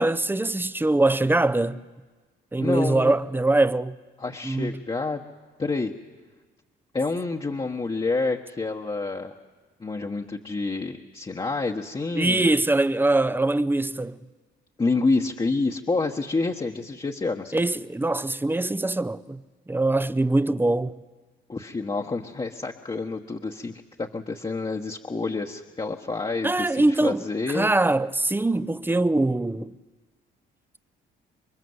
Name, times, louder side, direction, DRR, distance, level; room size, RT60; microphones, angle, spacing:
voice 1, 0.0-1.8 2.5-3.9 4.4-4.8 12.2-14.2 17.5-19.4 19.7-20.9 26.4-27.2 27.5-29.7, right 2 dB, 10° right, 0.7 m, -23 dB
voice 2, 2.6-3.1 4.2-5.2 5.6-5.9 6.9-9.3 9.8-12.5 14.8-17.6 21.5-27.7, left 3 dB, 25° left, 1.3 m, -28 dB
27.5 x 23.0 x 8.0 m
cardioid pair, 90°, 20 cm